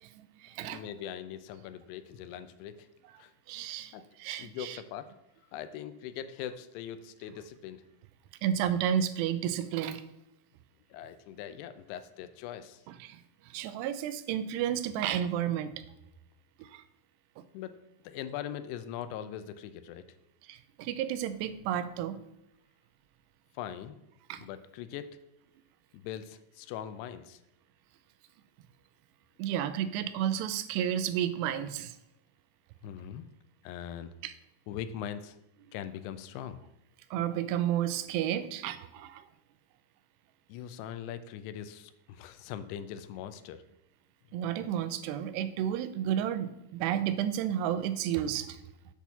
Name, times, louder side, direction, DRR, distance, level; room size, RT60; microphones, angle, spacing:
voice 1, 0.0-0.8 3.5-3.9 4.2-4.8 8.4-10.0 13.0-13.2 13.5-15.7 16.6-16.8 20.5-22.2 24.3-24.5 29.4-32.0 34.2-34.3 37.1-39.2 44.3-48.6, right 10 dB, 85° right, 13 dB, 2.7 m, -31 dB
voice 2, 0.6-2.9 3.2-3.3 3.9-4.0 4.4-5.1 5.5-7.8 10.9-12.8 17.5-17.8 18.0-20.1 23.6-24.0 24.4-25.2 25.9-27.4 32.8-33.3 33.6-34.1 34.7-35.4 35.7-36.6 40.5-43.6, left 10 dB, 85° left, 12 dB, 2.6 m, -41 dB
8.3 x 4.4 x 6.9 m, 0.87 s
omnidirectional pair, 4.8 m